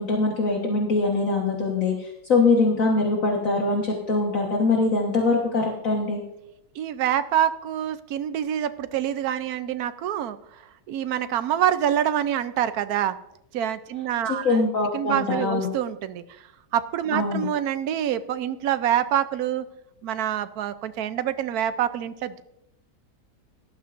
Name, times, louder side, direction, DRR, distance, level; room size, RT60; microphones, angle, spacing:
voice 1, 0.0-6.2 14.2-15.7 17.1-17.5, left 3 dB, 55° left, -1 dB, 1.7 m, -23 dB
voice 2, 6.8-10.4 10.9-13.2 13.5-14.6 14.9-16.2 16.7-19.6 20.0-22.4, right 10 dB, 70° right, 12 dB, 1.1 m, -26 dB
18.0 x 12.0 x 2.6 m, 0.86 s
omnidirectional pair, 1.8 m